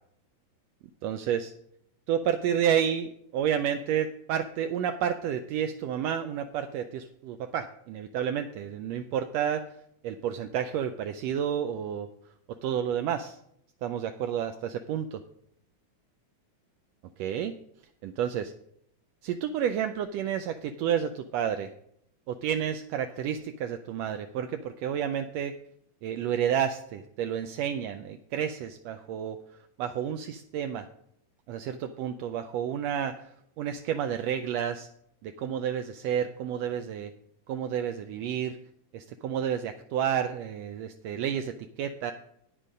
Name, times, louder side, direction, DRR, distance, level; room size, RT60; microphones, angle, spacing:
voice 1, 1.0-1.5 2.1-9.8 10.0-12.1 12.5-13.4 13.8-15.2 17.2-17.6 18.0-18.5 19.2-21.7 22.3-25.5 26.0-29.4 29.8-30.9 31.5-33.3 33.6-34.9 35.2-37.1 37.5-38.6 38.9-42.1, right 9 dB, 80° right, 8 dB, 1.5 m, -30 dB
9.3 x 8.3 x 5.1 m, 0.72 s
omnidirectional pair, 3.4 m